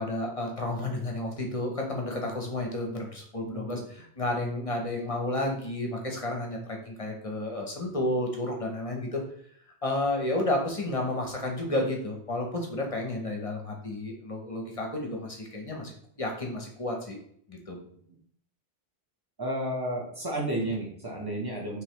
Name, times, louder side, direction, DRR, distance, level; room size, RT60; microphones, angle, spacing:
voice 1, 0.0-9.2 9.8-17.2 17.5-17.8, left 1 dB, 35° left, 1 dB, 0.8 m, -31 dB
voice 2, 3.4-3.8 17.7-17.9 19.4-21.8, right 1 dB, 20° right, -2 dB, 1.1 m, -32 dB
5.3 x 3.2 x 3.0 m, 0.64 s
omnidirectional pair, 1.1 m